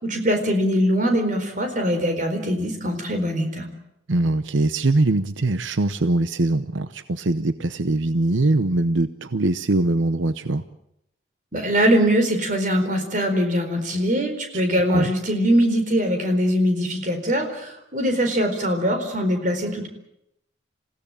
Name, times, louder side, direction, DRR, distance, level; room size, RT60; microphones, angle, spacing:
voice 1, 0.0-3.7 11.5-19.9, equal, 40° right, 6 dB, 4.4 m, -22 dB
voice 2, 4.1-10.6 14.9-15.1, right 2 dB, 85° right, 12 dB, 0.9 m, -22 dB
27.5 x 16.5 x 8.8 m, 0.80 s
head